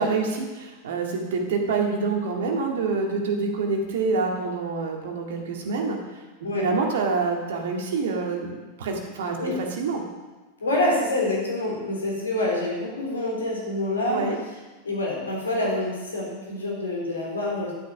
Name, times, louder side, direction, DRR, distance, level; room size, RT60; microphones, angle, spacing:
voice 1, 0.0-6.2 6.5-10.0 14.1-14.4, right 4 dB, 60° right, 2 dB, 2.0 m, -26 dB
voice 2, 10.6-14.3 14.8-17.7, left 1 dB, 75° left, -2 dB, 3.7 m, -26 dB
11.5 x 8.3 x 5.6 m, 1.2 s
figure-of-eight pair, 90°, 0 cm